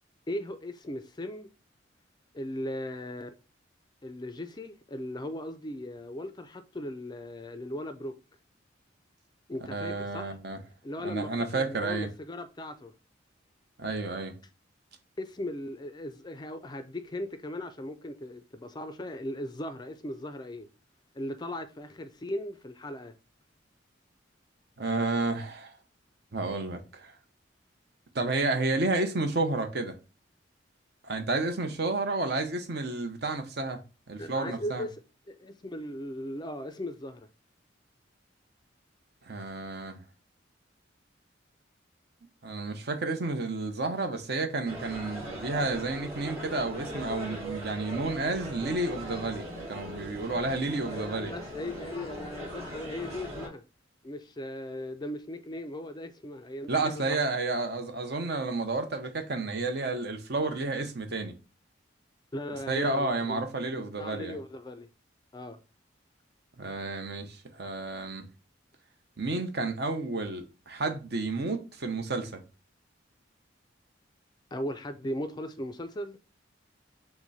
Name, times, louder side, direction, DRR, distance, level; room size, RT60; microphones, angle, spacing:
voice 1, 0.3-1.5 2.3-3.3 4.0-8.2 9.5-10.3 10.8-12.9 15.2-20.7 21.1-23.1 34.2-35.0 35.3-37.3 50.8-53.6 54.0-57.1 62.3-63.4 63.8-64.9 65.3-65.6 74.5-76.2, left 1 dB, 20° left, 0.4 m, -38 dB
voice 2, 9.7-10.6 11.0-12.1 13.8-14.3 24.8-25.7 26.3-27.1 28.1-29.9 31.0-33.8 34.1-34.8 39.3-40.0 42.4-51.3 56.7-61.3 62.7-64.4 66.6-68.3 69.2-72.4, right 3 dB, 60° right, 0.8 m, -31 dB
sound 1, 44.7-53.5, equal, 35° right, 2.1 m, -40 dB
5.9 x 2.1 x 4.0 m
head